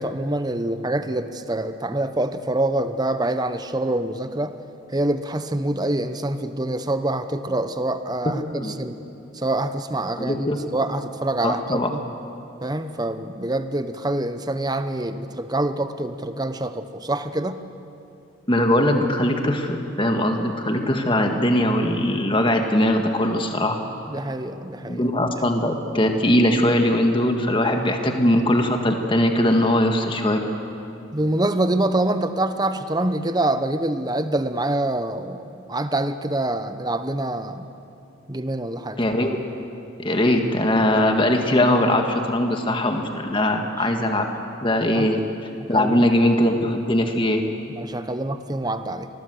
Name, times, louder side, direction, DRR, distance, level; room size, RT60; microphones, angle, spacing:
voice 1, 0.0-4.6 4.9-9.0 9.3-12.0 12.6-17.6 24.1-25.1 31.1-37.7 38.3-39.0 44.9-45.1 45.6-46.1 47.7-49.1, right 1 dB, 20° right, 10 dB, 0.9 m, -25 dB
voice 2, 10.2-10.6 11.4-11.9 18.5-23.8 24.9-30.4 39.0-39.4 40.0-44.3 44.6-45.2 45.7-47.4, left 1 dB, 25° left, 4 dB, 1.8 m, -20 dB
27.0 x 20.5 x 7.8 m, 2.7 s
head